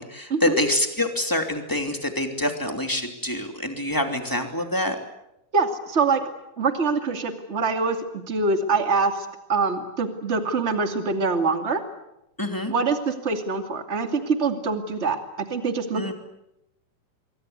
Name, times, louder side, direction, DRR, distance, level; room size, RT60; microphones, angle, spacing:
voice 1, 0.0-5.0 12.4-12.7 15.9-16.1, left 1 dB, 5° left, 4 dB, 2.3 m, -26 dB
voice 2, 5.5-6.2 6.6-11.8 12.7-16.1, right 4 dB, 20° right, 6 dB, 2.1 m, -24 dB
26.5 x 23.5 x 8.2 m, 0.86 s
omnidirectional pair, 4.3 m